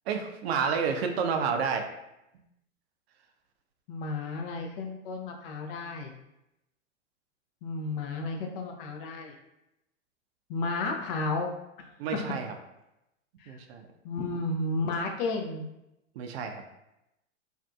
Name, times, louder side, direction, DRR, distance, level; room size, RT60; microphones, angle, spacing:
voice 1, 0.1-1.9 12.0-12.5 13.5-13.9 16.2-16.6, right 6 dB, 60° right, 5 dB, 0.5 m, -30 dB
voice 2, 3.9-6.1 7.6-9.3 10.5-11.5 13.4-13.6 14.0-15.6, left 3 dB, 50° left, 2 dB, 0.5 m, -32 dB
2.6 x 2.4 x 2.2 m, 0.89 s
hypercardioid pair, 100°, 36 cm